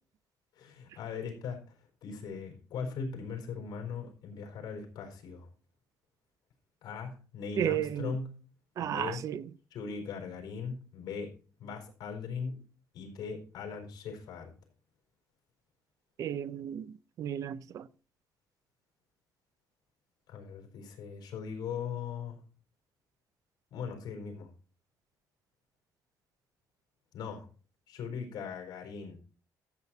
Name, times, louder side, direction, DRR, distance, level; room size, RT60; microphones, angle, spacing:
voice 1, 0.6-1.6 2.0-5.5 6.8-8.3 8.8-9.2 9.7-11.3 11.6-12.6 12.9-14.5 20.3-22.4 23.7-24.5 27.1-27.5 27.9-29.2, left 5 dB, 70° left, 4.5 m, -39 dB
voice 2, 7.6-8.2 8.8-9.5 16.2-17.9, right 10 dB, 50° right, 0.6 m, -34 dB
14.0 x 7.6 x 4.2 m
cardioid pair, 165°, 7 cm